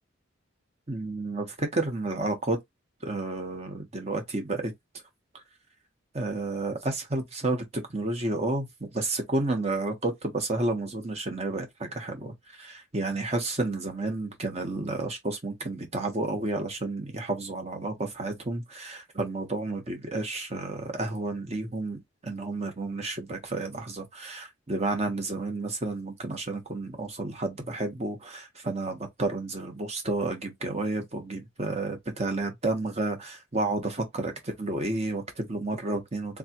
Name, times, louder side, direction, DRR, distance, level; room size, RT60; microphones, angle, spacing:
voice 1, 0.9-2.6 3.0-4.7 6.1-36.4, right 2 dB, 35° right, 1.2 m, -31 dB
3.7 x 3.2 x 2.9 m
head